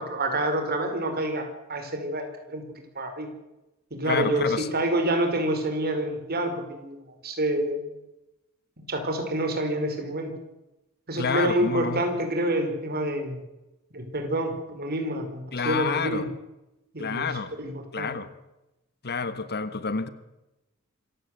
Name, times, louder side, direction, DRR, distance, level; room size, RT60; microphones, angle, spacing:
voice 1, 0.0-2.6 2.9-3.3 3.9-7.0 7.2-7.9 8.9-10.3 11.1-13.4 13.9-16.3 16.9-17.3 17.6-17.7 18.0-18.1, right 1 dB, 45° right, 5 dB, 4.8 m, -27 dB
voice 2, 4.1-4.7 11.2-12.1 15.5-16.3 17.0-17.5 17.9-18.3 19.0-20.1, left 5 dB, 45° left, 12 dB, 1.3 m, -28 dB
26.0 x 15.5 x 7.9 m, 0.98 s
head